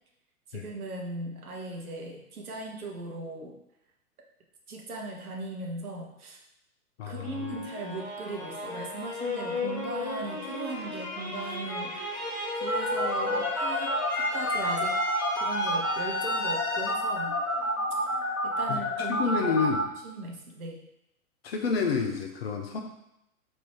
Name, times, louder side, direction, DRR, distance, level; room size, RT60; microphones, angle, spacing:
voice 1, 0.5-3.5 4.7-6.4 7.1-12.2 12.5-14.9 15.3-17.4 18.4-19.7 20.0-20.8, right 2 dB, 70° right, 0 dB, 1.0 m, -38 dB
voice 2, 7.0-7.5 18.7-19.8 21.4-22.8, left 5 dB, 45° left, 3 dB, 0.5 m, -29 dB
sound 1, 7.2-18.2, left 2 dB, 25° left, 1.0 m, -34 dB
sound 2, 12.7-19.8, left 1 dB, 60° left, 1.4 m, -30 dB
3.1 x 2.6 x 4.4 m, 0.83 s
figure-of-eight pair, 105°, 46 cm